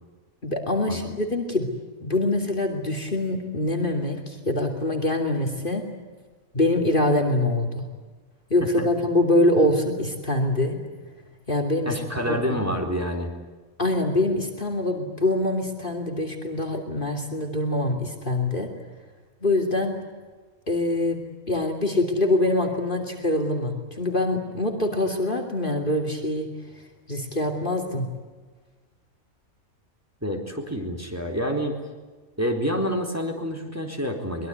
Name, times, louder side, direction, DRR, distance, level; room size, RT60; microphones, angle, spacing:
voice 1, 0.4-1.7 2.0-5.8 6.5-7.8 8.5-10.8 11.5-12.6 13.8-18.7 19.4-20.0 20.7-21.2 21.5-26.5 27.1-28.1, left 1 dB, 35° left, 5 dB, 3.1 m, -24 dB
voice 2, 11.9-13.3 30.2-31.8 32.4-34.5, equal, 10° right, 2 dB, 4.1 m, -28 dB
24.0 x 22.0 x 9.5 m, 1.3 s
omnidirectional pair, 1.5 m